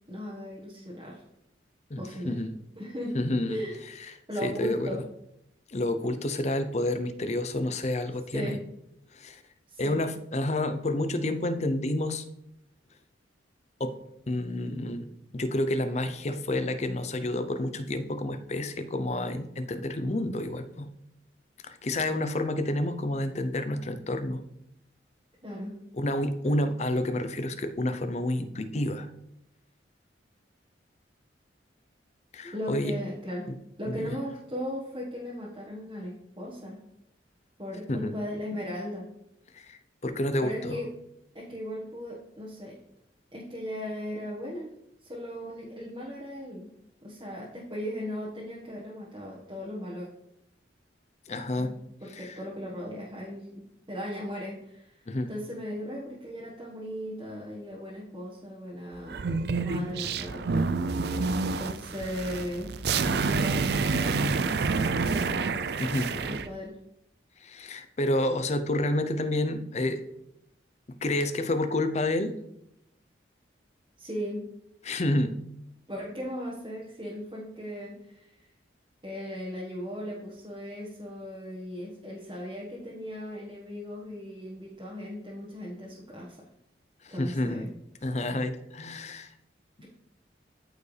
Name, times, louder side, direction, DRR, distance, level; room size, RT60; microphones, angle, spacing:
voice 1, 0.1-1.2 2.0-2.4 2.8-3.2 3.5-3.8 4.3-5.0 8.3-8.6 9.7-10.0 25.4-25.7 32.5-33.5 33.8-36.8 37.6-39.1 40.4-40.9 41.3-42.8 43.3-44.7 45.0-46.7 47.0-50.1 51.5-51.7 52.0-53.6 53.9-60.5 61.6-62.7 63.1-64.2 65.0-65.3 66.1-66.7 74.0-74.5 75.9-78.4 79.0-86.4 87.1-87.7, equal, 25° right, -6 dB, 1.4 m, -37 dB
voice 2, 1.9-2.6 3.1-3.6 4.4-4.9 5.7-8.6 9.1-9.4 9.8-12.2 13.8-13.9 14.3-20.9 21.7-24.4 25.9-29.1 32.3-33.0 33.9-34.2 37.9-38.1 39.5-40.8 51.3-51.7 52.1-52.4 55.1-55.3 65.8-66.1 67.4-70.0 71.0-72.3 74.8-75.3 87.2-87.7 88.0-89.3, left 1 dB, 35° left, 10 dB, 0.6 m, -29 dB
sound 1, 59.1-66.5, right 4 dB, 60° right, 0.4 m, -28 dB
13.5 x 4.6 x 3.3 m, 0.80 s
head